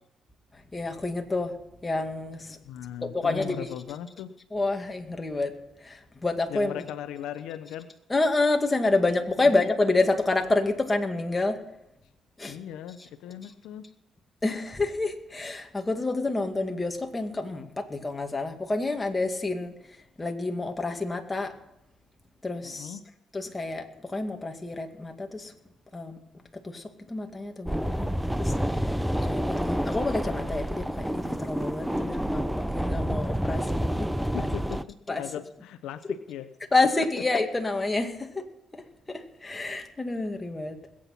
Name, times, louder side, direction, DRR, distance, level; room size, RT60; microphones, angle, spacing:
voice 1, 0.5-1.5 1.8-2.6 3.0-3.7 4.5-5.5 5.8-6.8 8.1-11.6 12.4-12.6 14.4-19.7 20.2-21.5 22.4-22.9 23.3-25.5 25.9-26.2 26.5-34.5 35.1-35.2 36.7-38.5 38.7-40.8, left 2 dB, 20° left, 4 dB, 2.1 m, -28 dB
voice 2, 2.7-4.3 6.5-7.9 9.4-9.5 12.5-13.8 22.6-23.0 32.3-32.4 34.3-36.5 37.0-37.1, left 10 dB, 90° left, 11 dB, 0.7 m, -38 dB
sound 1, 27.7-34.8, equal, ahead, 0.6 m, -28 dB
21.0 x 8.7 x 5.8 m, 0.85 s
cardioid pair, 90°, 0 cm